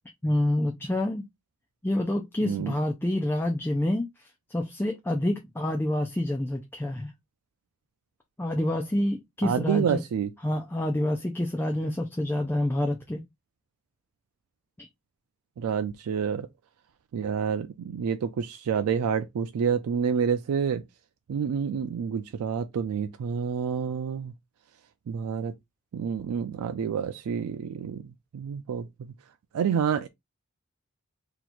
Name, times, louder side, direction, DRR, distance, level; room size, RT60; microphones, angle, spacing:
voice 1, 0.2-1.3 1.8-4.1 4.5-7.1 8.4-10.0 10.4-13.2 14.8-14.9, left 1 dB, 10° left, 0.4 m, -27 dB
voice 2, 2.4-2.7 9.4-10.3 15.6-16.5 17.1-20.8 21.3-24.3 25.1-25.5 25.9-28.0 28.3-28.9 29.5-30.1, right 7 dB, 90° right, 0.3 m, -28 dB
2.9 x 2.3 x 4.2 m
head